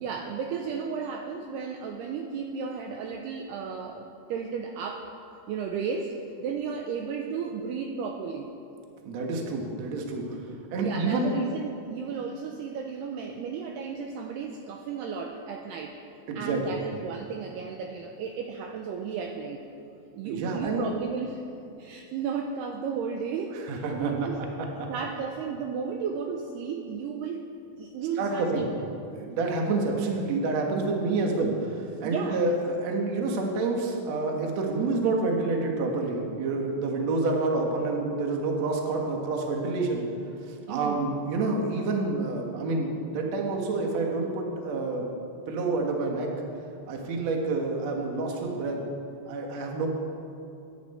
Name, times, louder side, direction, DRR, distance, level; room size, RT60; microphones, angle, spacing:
voice 1, 0.0-5.1 5.5-8.5 10.8-16.0 16.4-19.7 20.1-21.4 21.8-24.4 24.9-27.5 27.8-28.6 32.0-32.4 40.7-41.1, right 6 dB, 80° right, 3 dB, 2.4 m, -34 dB
voice 2, 9.1-10.4 10.7-11.4 16.3-16.8 20.2-20.8 23.7-24.1 24.8-24.9 28.2-28.7 29.1-40.1 40.5-45.1 45.5-46.3 46.9-48.9 49.3-49.9, right 3 dB, 60° right, 1 dB, 1.8 m, -28 dB
22.5 x 10.5 x 4.4 m, 2.7 s
omnidirectional pair, 5.4 m